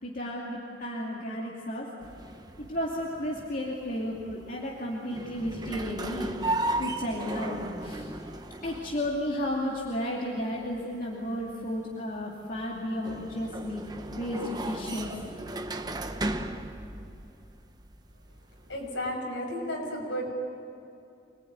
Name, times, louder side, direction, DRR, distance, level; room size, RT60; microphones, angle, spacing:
voice 1, 0.0-1.9 2.6-8.0 8.6-13.8 14.1-15.1, equal, 40° left, -4 dB, 2.7 m, -33 dB
sound 1, 2.0-19.1, right 1 dB, 20° right, 1.0 m, -37 dB
voice 2, 18.7-20.3, equal, 70° left, 0 dB, 6.6 m, -33 dB
26.0 x 20.0 x 9.6 m, 2.7 s
head